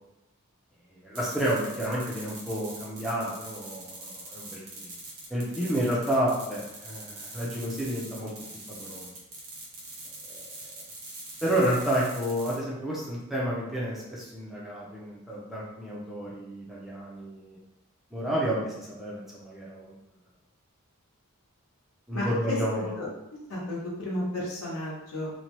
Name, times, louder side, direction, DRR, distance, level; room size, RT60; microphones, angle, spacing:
voice 1, 1.0-4.9 5.3-8.3 8.7-9.1 10.3-10.4 10.8-10.9 11.4-17.6 18.1-19.9 22.1-22.9, equal, ahead, -7 dB, 0.5 m, -30 dB
sound 1, 1.1-12.6, right 2 dB, 80° right, 1.1 m, -43 dB
voice 2, 22.1-22.6 23.0-23.1 23.5-25.3, left 1 dB, 70° left, -5 dB, 1.0 m, -33 dB
2.8 x 2.2 x 3.0 m, 0.91 s
head